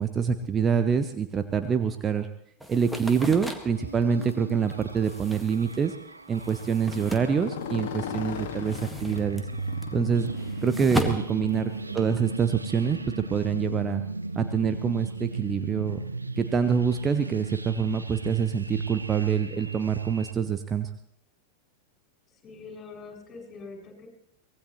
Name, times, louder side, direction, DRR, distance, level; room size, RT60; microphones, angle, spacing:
voice 1, 0.0-2.3 2.7-6.0 6.3-9.5 9.9-10.3 10.6-14.0 14.3-16.0 16.4-20.9, right 6 dB, 20° right, 9 dB, 0.8 m, -26 dB
sound 1, 2.6-8.0 8.3-12.2, equal, 5° right, 1.8 m, -36 dB
sound 2, 3.7-20.3, right 3 dB, 80° right, 0.9 m, -36 dB
Motorcycle, 6.3-14.4, left 8 dB, 55° left, 1.8 m, -39 dB
voice 2, 22.3-24.1, left 4 dB, 25° left, 0 dB, 6.5 m, -45 dB
24.0 x 19.0 x 3.1 m, 0.73 s
figure-of-eight pair, 90°, 0 cm